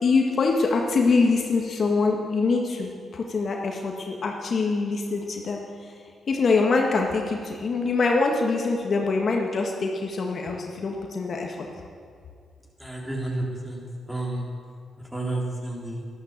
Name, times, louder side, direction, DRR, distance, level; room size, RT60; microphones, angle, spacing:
voice 1, 0.0-5.6 6.3-11.7, left 4 dB, 55° left, 1 dB, 1.8 m, -24 dB
voice 2, 12.8-13.8 14.1-14.5 15.1-16.0, right 2 dB, 5° right, -2 dB, 3.8 m, -30 dB
12.5 x 12.0 x 7.6 m, 2.2 s
cardioid pair, 75°, 0 cm